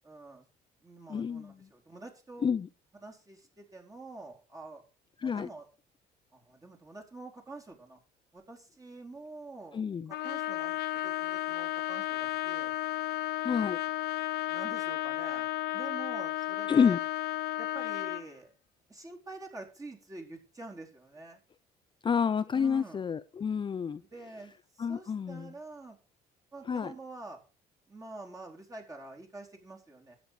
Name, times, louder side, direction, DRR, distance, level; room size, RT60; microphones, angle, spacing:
voice 1, 0.0-0.4 0.8-2.5 3.0-4.8 5.2-5.7 6.3-8.0 8.3-12.7 14.5-17.0 17.6-18.5 18.9-21.4 22.5-23.0 24.1-26.0 26.5-27.4 27.9-30.2, right 2 dB, 20° right, 4.4 m, -47 dB
voice 2, 1.1-1.5 2.4-2.7 5.2-5.5 9.7-10.1 13.4-13.8 16.7-17.0 22.0-24.0 24.8-25.5 26.7-26.9, left 6 dB, 30° left, 0.6 m, -29 dB
Trumpet, 10.1-18.3, left 16 dB, 75° left, 0.9 m, -33 dB
13.0 x 9.5 x 5.0 m
cardioid pair, 110°, 17 cm